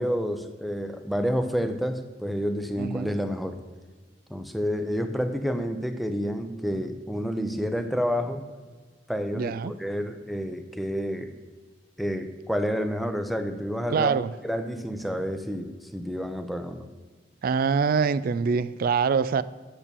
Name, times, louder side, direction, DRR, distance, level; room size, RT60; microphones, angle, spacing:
voice 1, 0.0-3.6 4.3-8.5 9.1-11.3 12.0-14.1 14.4-16.9, equal, ahead, 7 dB, 0.6 m, -29 dB
voice 2, 2.8-3.1 9.3-9.7 13.9-14.3 17.4-19.4, right 5 dB, 50° right, 16 dB, 0.3 m, -24 dB
8.6 x 6.8 x 6.8 m, 1.4 s
head